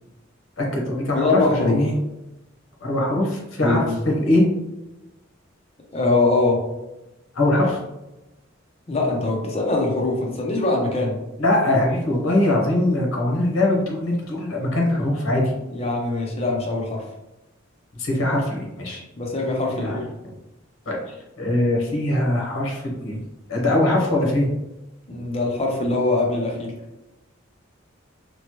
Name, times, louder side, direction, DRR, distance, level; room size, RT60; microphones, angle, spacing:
voice 1, 0.6-1.9 2.8-4.4 7.3-7.8 11.4-15.4 17.9-19.0 19.8-20.0 20.9-23.2 23.5-24.5, left 1 dB, 85° left, -1 dB, 0.8 m, -22 dB
voice 2, 1.1-1.8 3.6-4.0 5.9-6.6 8.9-11.2 15.7-17.1 19.2-20.1 25.1-26.7, left 2 dB, 30° left, -1 dB, 0.5 m, -22 dB
3.0 x 2.1 x 2.9 m, 0.96 s
head